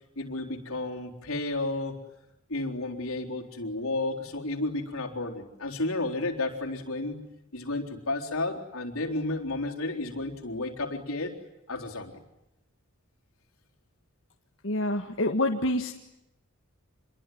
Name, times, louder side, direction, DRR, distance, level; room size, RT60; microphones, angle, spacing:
voice 1, 0.2-2.0 2.5-7.2 7.5-11.4 11.7-12.2, left 2 dB, 80° left, 1 dB, 4.0 m, -32 dB
voice 2, 14.6-15.9, left 1 dB, 60° left, 2 dB, 1.7 m, -27 dB
27.0 x 22.5 x 9.4 m, 0.86 s
head